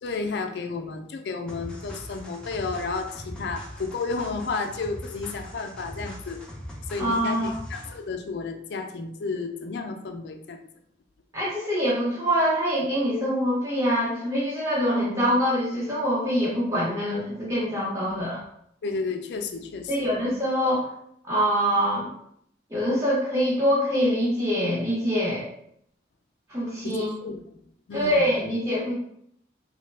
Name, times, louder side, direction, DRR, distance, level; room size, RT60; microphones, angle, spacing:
voice 1, 0.0-6.4 6.9-10.6 18.0-18.2 18.8-20.1 26.8-27.4 27.9-28.3, left 4 dB, 70° left, 6 dB, 0.4 m, -32 dB
sound 1, 1.5-8.1, equal, 5° left, 0.4 m, -40 dB
voice 2, 7.0-7.5 11.3-18.4 19.9-20.9 21.3-22.1 22.7-25.5 26.5-27.1 27.9-28.9, equal, 15° right, -7 dB, 0.8 m, -24 dB
3.1 x 2.1 x 3.2 m, 0.71 s
head